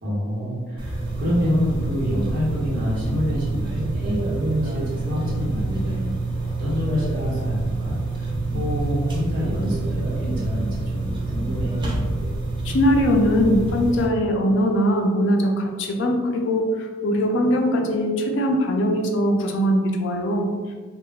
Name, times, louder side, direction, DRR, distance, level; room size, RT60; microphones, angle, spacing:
voice 1, 0.0-4.2 4.6-6.1 6.4-11.7, equal, 45° right, -7 dB, 1.0 m, -27 dB
sound 1, 0.8-14.1, right 2 dB, 25° right, 0.4 m, -27 dB
voice 2, 12.6-20.5, equal, 60° left, 2 dB, 0.4 m, -21 dB
2.2 x 2.1 x 3.4 m, 1.5 s
head